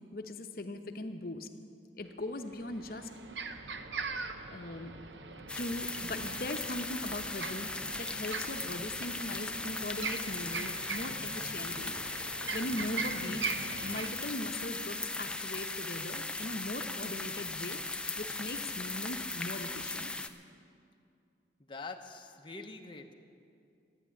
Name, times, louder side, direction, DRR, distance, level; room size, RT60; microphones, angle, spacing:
voice 1, 0.1-1.5 2.0-3.1 4.5-4.9 5.6-12.0 12.5-13.5 13.8-17.8 18.2-20.1, left 1 dB, 55° left, 7 dB, 0.9 m, -39 dB
sound 1, 2.0-2.1 2.5-14.1, right 4 dB, 75° right, 0.8 m, -41 dB
sound 2, 5.5-20.3, left 2 dB, 5° left, 0.4 m, -38 dB
voice 2, 21.7-23.1, left 3 dB, 25° left, 4 dB, 0.8 m, -44 dB
14.0 x 9.9 x 8.4 m, 2.5 s
head